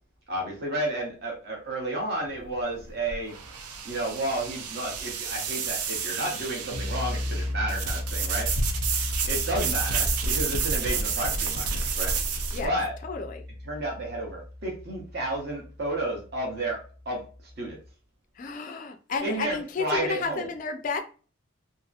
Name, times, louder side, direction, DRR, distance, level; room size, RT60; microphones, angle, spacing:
voice 1, 0.3-3.3 3.8-8.5 9.3-12.1 12.6-12.9 13.6-17.2 17.6-17.8 19.2-20.5, right 1 dB, 45° right, 0.8 m, -31 dB
sound 1, 2.3-12.7, right 5 dB, 90° right, 0.5 m, -30 dB
sound 2, 6.7-17.9, left 1 dB, 5° right, 0.7 m, -35 dB
voice 2, 13.0-13.5 18.4-21.0, left 4 dB, 35° left, 0.3 m, -32 dB
2.7 x 2.5 x 2.3 m
head